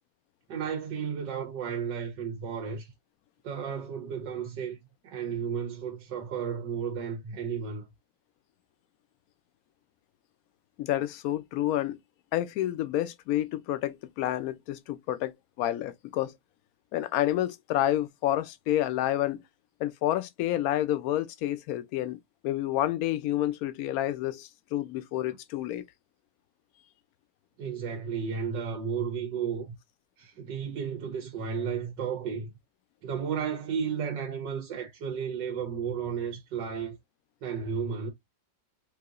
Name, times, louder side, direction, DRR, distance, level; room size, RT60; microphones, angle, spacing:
voice 1, 0.5-2.9 3.4-4.8 5.0-7.9 27.6-29.7 30.2-32.5 33.0-37.0 37.4-38.1, right 7 dB, 85° right, 1.6 m, -33 dB
voice 2, 10.8-12.0 12.3-16.3 16.9-19.4 19.8-22.2 22.4-25.8, left 13 dB, 70° left, 0.9 m, -29 dB
4.7 x 2.8 x 2.5 m
omnidirectional pair, 1.9 m